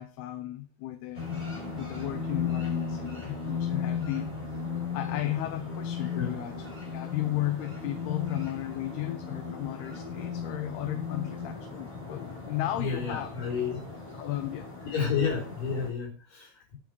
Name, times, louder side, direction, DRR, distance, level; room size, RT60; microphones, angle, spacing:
voice 1, 0.0-1.5 1.8-4.6 4.9-6.5 6.9-13.3 14.1-14.7, left 14 dB, 85° left, 2.9 m, -34 dB
sound 1, 1.1-15.9, left 5 dB, 10° left, 5.3 m, -36 dB
voice 2, 12.7-13.9 14.9-16.8, left 6 dB, 60° left, 5.8 m, -31 dB
9.6 x 9.3 x 4.9 m
omnidirectional pair, 4.5 m